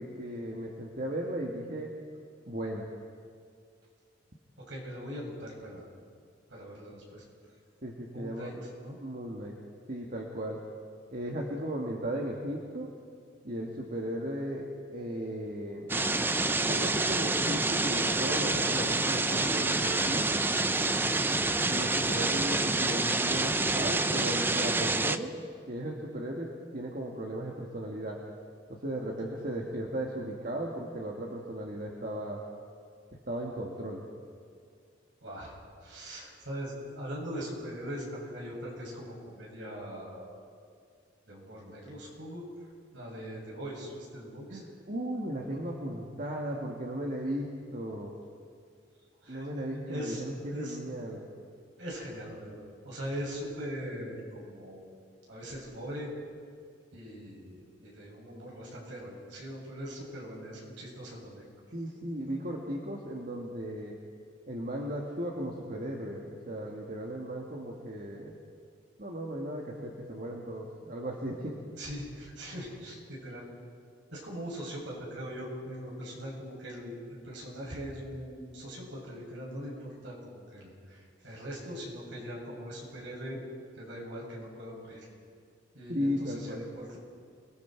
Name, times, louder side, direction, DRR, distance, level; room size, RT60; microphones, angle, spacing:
voice 1, 0.0-1.9 2.5-2.9 7.8-8.6 9.0-9.5 9.9-10.6 11.1-12.9 13.4-15.9 16.6-20.3 21.7-25.3 25.7-28.2 28.7-32.4 33.3-34.0 44.5-47.5 47.7-48.1 49.3-51.3 61.7-64.0 64.5-68.4 69.0-71.6 85.9-86.7, right 1 dB, 45° right, -1 dB, 1.9 m, -36 dB
voice 2, 4.7-5.9 6.5-7.2 8.1-9.0 21.0-21.1 29.2-29.5 35.2-40.4 41.3-42.4 42.9-44.6 49.2-50.2 50.5-50.8 51.8-54.9 55.3-56.1 56.9-61.5 71.8-73.5 74.1-83.4 83.7-85.1 85.7-87.0, equal, 70° right, -4 dB, 7.9 m, -41 dB
sound 1, 15.9-25.2, right 2 dB, 10° right, 0.5 m, -27 dB
30.0 x 20.5 x 4.7 m, 2.2 s
head